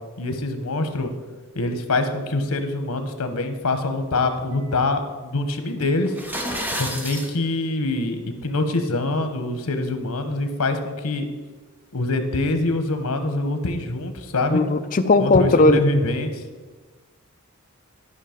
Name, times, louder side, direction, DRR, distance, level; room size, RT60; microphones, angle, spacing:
voice 1, 0.2-1.1 1.5-6.1 6.8-11.3 11.9-14.6 15.2-16.4, left 2 dB, 85° left, 8 dB, 1.1 m, -24 dB
sound 1, 6.1-7.3, equal, 10° right, 0.8 m, -29 dB
voice 2, 14.5-15.8, left 2 dB, 35° left, 10 dB, 0.5 m, -17 dB
12.0 x 5.6 x 5.1 m, 1.3 s
head